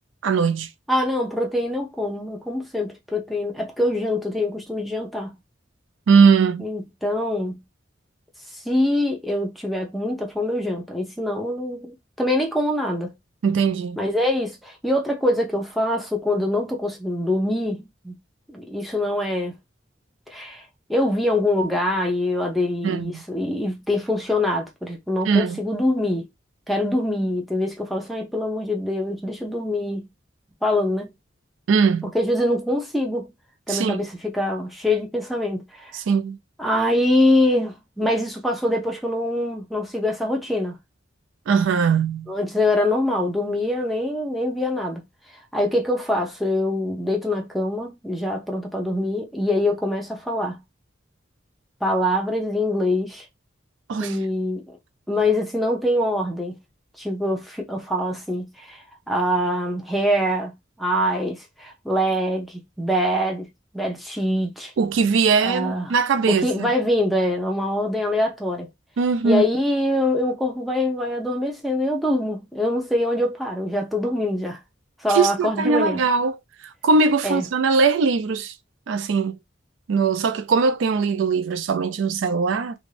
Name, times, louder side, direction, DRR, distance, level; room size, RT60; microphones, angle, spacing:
voice 1, 0.2-0.7 6.1-6.7 13.4-14.0 22.8-23.2 25.3-25.6 31.7-32.1 33.7-34.1 35.9-36.4 41.5-42.3 53.9-54.2 64.8-66.7 69.0-69.4 75.1-78.5 78.9-79.4 79.9-82.7, right 5 dB, 85° right, 0.4 m, -20 dB
voice 2, 0.9-5.3 6.6-7.6 8.7-13.1 14.0-18.2 18.5-19.6 20.3-20.6 20.9-26.3 26.7-30.1 30.6-31.1 32.1-33.3 33.7-35.9 36.6-40.8 42.3-45.0 45.5-50.6 51.8-53.2 54.0-54.8 55.1-56.6 57.0-63.5 63.7-64.7 65.4-65.9 66.3-68.7 69.2-74.6 75.0-76.0 77.2-77.4, left 1 dB, ahead, 0.5 m, -24 dB
2.5 x 2.2 x 3.1 m
head